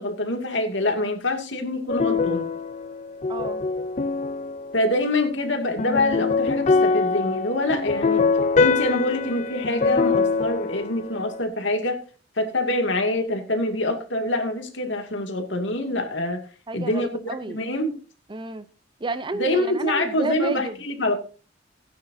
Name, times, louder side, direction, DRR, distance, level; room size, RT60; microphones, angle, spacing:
voice 1, 0.0-2.5 4.7-8.3 8.6-12.0 12.4-16.4 16.7-18.0 19.4-21.1, left 1 dB, 75° left, 2.4 m, -25 dB
sound 1, 1.9-5.0 5.8-11.4, left 4 dB, 40° left, 0.6 m, -24 dB
voice 2, 3.3-3.7 16.7-17.6 18.3-18.7 19.0-20.8, right 2 dB, 25° right, 0.7 m, -31 dB
17.0 x 9.5 x 2.7 m
head